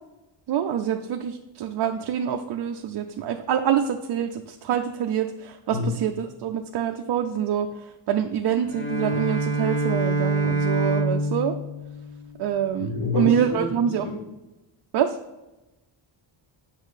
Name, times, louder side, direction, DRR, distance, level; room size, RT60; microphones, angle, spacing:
voice 1, 0.5-11.6 12.4-14.1 14.9-15.2, right 9 dB, 55° right, 4 dB, 0.5 m, -26 dB
Bowed string instrument, 8.6-12.8, right 2 dB, 25° left, 0.9 m, -26 dB
voice 2, 12.8-13.6 14.0-14.1, left 3 dB, 55° left, -1 dB, 2.2 m, -27 dB
8.2 x 5.7 x 4.0 m, 1.0 s
wide cardioid pair, 175°, 49 cm